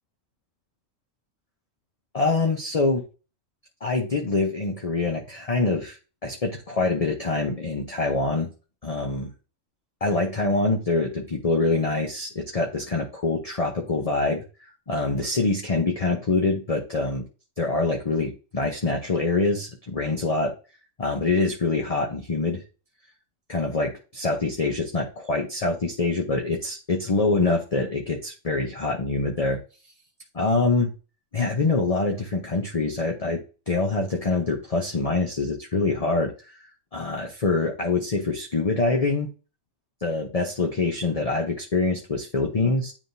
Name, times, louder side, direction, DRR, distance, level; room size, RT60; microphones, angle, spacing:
voice 1, 2.1-3.0 3.8-8.5 8.8-9.3 10.0-14.4 14.9-17.2 17.6-20.5 21.0-22.6 23.5-29.6 30.3-30.9 31.3-33.4 33.7-36.6 36.9-39.3 40.0-42.9, left 3 dB, 30° left, 2 dB, 0.8 m, -25 dB
9.8 x 3.6 x 2.7 m, 0.33 s
omnidirectional pair, 1.4 m